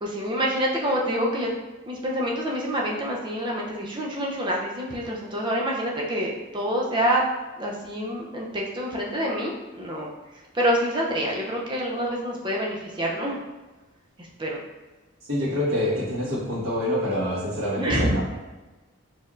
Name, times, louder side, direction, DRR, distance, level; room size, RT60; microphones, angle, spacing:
voice 1, 0.0-1.5 1.9-7.2 7.6-10.1 10.5-13.4 14.4-14.6 17.8-18.1, equal, 20° right, -2 dB, 0.5 m, -27 dB
voice 2, 15.3-18.2, equal, 90° right, -8 dB, 1.4 m, -26 dB
4.3 x 3.5 x 2.4 m, 1.2 s
head